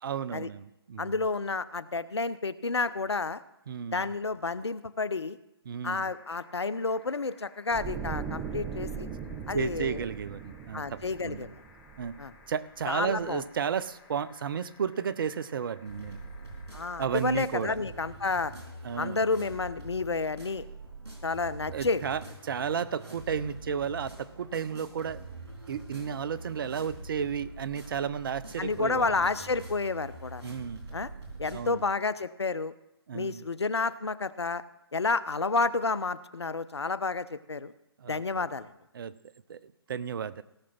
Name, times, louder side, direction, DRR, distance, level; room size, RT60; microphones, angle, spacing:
voice 1, 0.0-1.1 3.7-4.1 5.7-6.1 9.5-11.5 12.0-12.1 12.5-16.2 17.0-17.8 18.8-19.3 21.7-25.2 25.7-29.3 30.4-30.9 31.5-31.8 33.1-33.4 38.0-38.5 38.9-39.1 39.5-40.4, right 7 dB, 55° right, 17 dB, 0.6 m, -33 dB
voice 2, 1.0-3.4 3.9-5.4 5.8-9.1 9.5-10.0 10.7-11.6 12.2-12.3 12.9-13.4 16.7-18.5 19.0-20.6 21.2-22.1 28.6-30.4 30.9-31.1 31.4-32.7 33.1-34.6 34.9-37.7 38.1-38.7, left 3 dB, 90° left, 16 dB, 0.6 m, -30 dB
sound 1, 6.0-17.3 18.7-18.8, left 4 dB, 40° left, 2.8 m, -57 dB
sound 2, 7.7-12.8 13.1-13.3, right 7 dB, 15° right, 0.6 m, -39 dB
sound 3, 15.8-31.6, right 2 dB, 85° right, 4.0 m, -45 dB
17.0 x 6.2 x 5.9 m, 0.88 s
figure-of-eight pair, 135°, 13 cm